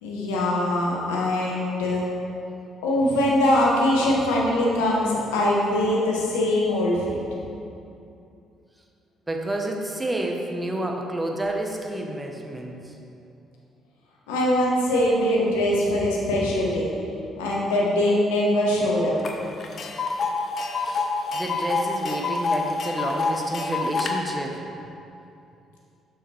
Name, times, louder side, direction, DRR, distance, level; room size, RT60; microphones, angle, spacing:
voice 1, 0.0-2.1 2.8-7.2 14.3-16.9 17.4-19.1, left 1 dB, 80° left, -4 dB, 1.1 m, -22 dB
voice 2, 9.3-12.9 20.8-21.1 21.3-24.7, right 1 dB, 15° right, 1 dB, 1.0 m, -30 dB
Tick, 19.2-19.3 19.6-24.1, left 4 dB, 50° left, 0.7 m, -27 dB
6.9 x 6.3 x 3.3 m, 2.7 s
hypercardioid pair, 45°, 0 cm